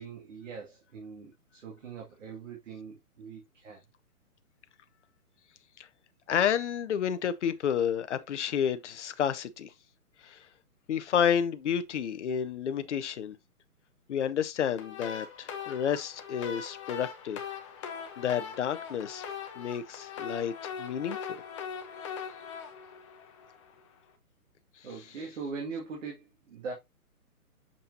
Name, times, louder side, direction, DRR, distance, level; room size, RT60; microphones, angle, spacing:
voice 1, 0.0-3.8 24.8-26.7, right 5 dB, 55° right, 2.3 m, -41 dB
voice 2, 6.3-9.7 10.2-10.4 10.9-13.4 14.1-17.4 18.2-19.2 19.6-21.4, left 8 dB, 50° left, 0.9 m, -30 dB
sound 1, 14.8-23.9, left 7 dB, 20° left, 0.8 m, -41 dB
7.0 x 5.3 x 2.7 m
hypercardioid pair, 150°, 45 cm